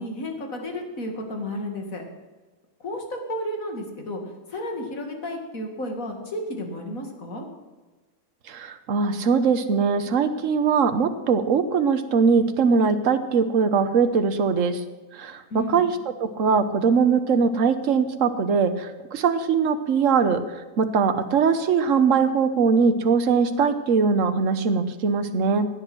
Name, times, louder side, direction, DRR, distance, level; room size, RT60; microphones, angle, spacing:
voice 1, 0.0-2.0 2.8-7.5 15.5-15.8, left 1 dB, 65° left, 3 dB, 2.7 m, -32 dB
voice 2, 8.5-14.8 15.1-15.9 16.2-20.4 20.8-25.7, right 5 dB, 60° right, 9 dB, 1.4 m, -21 dB
17.0 x 10.0 x 6.1 m, 1.2 s
omnidirectional pair, 1.6 m